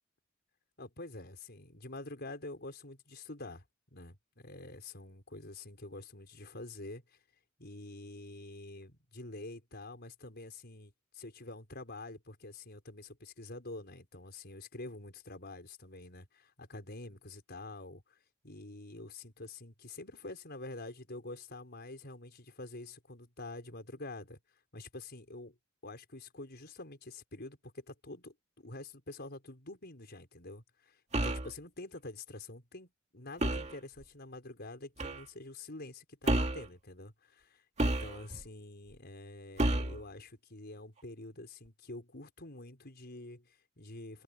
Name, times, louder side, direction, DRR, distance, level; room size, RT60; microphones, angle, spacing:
voice 1, 0.8-3.6 3.9-7.0 7.6-18.2 18.4-24.4 24.7-25.6 25.8-44.2, left 2 dB, 55° left, 5.3 m, -47 dB
sound 1, 31.1-31.5 33.4-33.8 35.0-35.2 36.3-36.7 37.8-38.4 39.6-40.0, right 1 dB, 35° right, 2.2 m, -30 dB
head